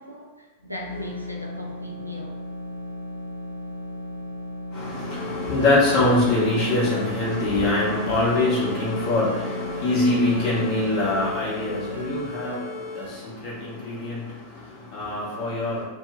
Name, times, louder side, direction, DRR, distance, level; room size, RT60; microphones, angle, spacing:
voice 1, 0.0-2.3, left 1 dB, 90° right, -1 dB, 0.5 m, -38 dB
sound 1, 0.6-12.4, left 1 dB, 85° left, 0.4 m, -36 dB
voice 2, 4.7-15.8, left 2 dB, 45° left, -6 dB, 1.1 m, -24 dB
sound 2, 5.1-13.1, left 2 dB, 20° left, 1.2 m, -36 dB
2.4 x 2.1 x 3.7 m, 1.2 s
figure-of-eight pair, 90°, 0 cm